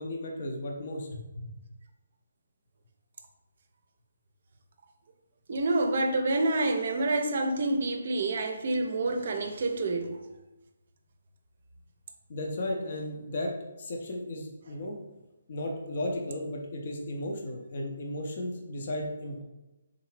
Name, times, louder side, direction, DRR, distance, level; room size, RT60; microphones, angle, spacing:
voice 1, 0.0-1.5 12.3-13.5 13.8-15.0 15.5-19.4, left 1 dB, 45° left, 1 dB, 0.6 m, -35 dB
voice 2, 5.5-10.1, right 2 dB, 45° right, 5 dB, 0.5 m, -27 dB
3.7 x 2.7 x 3.1 m, 1.0 s
figure-of-eight pair, 140°, 0 cm